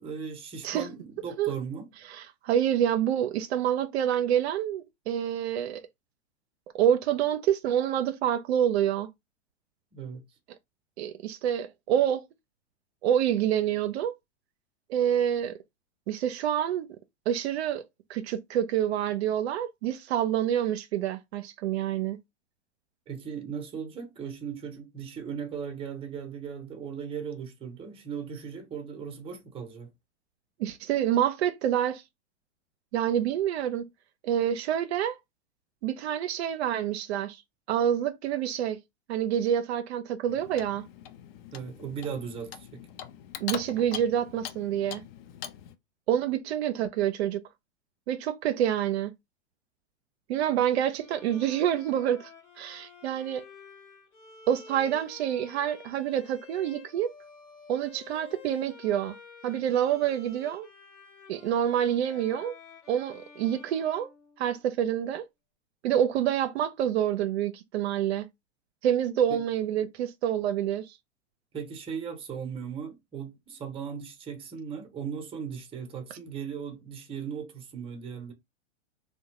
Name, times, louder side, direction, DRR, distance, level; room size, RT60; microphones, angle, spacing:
voice 1, 0.0-1.9 9.9-10.2 23.1-29.9 41.5-42.8 69.3-69.4 71.5-78.3, right 7 dB, 15° right, 0.6 m, -37 dB
voice 2, 2.1-5.8 6.7-9.1 11.0-12.2 13.0-14.1 14.9-15.6 16.1-16.9 17.3-17.8 18.1-22.2 30.6-32.0 32.9-33.8 34.2-35.2 35.8-37.4 37.7-38.8 39.1-40.8 43.4-45.0 46.1-47.4 48.1-49.1 50.3-52.3 52.6-53.5 54.5-57.1 57.7-59.2 59.4-60.7 61.3-62.5 62.9-64.1 64.4-65.2 65.8-68.3 68.8-71.0, right 10 dB, 65° right, 0.5 m, -27 dB
Clock, 40.3-45.8, left 9 dB, 55° left, 0.5 m, -42 dB
Bowed string instrument, 51.0-64.9, left 5 dB, 90° left, 1.1 m, -51 dB
2.6 x 2.1 x 3.0 m
hypercardioid pair, 120°, 35 cm